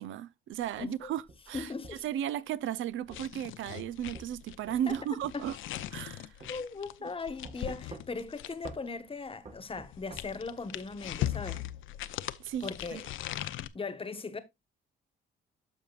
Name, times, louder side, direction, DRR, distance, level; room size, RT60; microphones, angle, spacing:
voice 1, 0.0-1.7 2.0-5.6 5.9-6.3 12.4-13.0, right 10 dB, 75° right, 0.6 m, -35 dB
sound 1, 0.6-2.1 3.1-3.3 4.1-6.1 6.4-6.5 7.4-8.3 8.6-8.8 9.5-10.2, right 2 dB, 35° right, 1.5 m, -48 dB
voice 2, 1.5-2.0 4.9-5.0 5.3-5.5 6.5-11.7 12.6-13.1 13.7-14.4, left 4 dB, 25° left, 1.2 m, -38 dB
sound 2, 3.1-8.9 9.7-13.7, left 13 dB, 80° left, 0.6 m, -39 dB
12.5 x 5.3 x 2.4 m
cardioid pair, 90°, 20 cm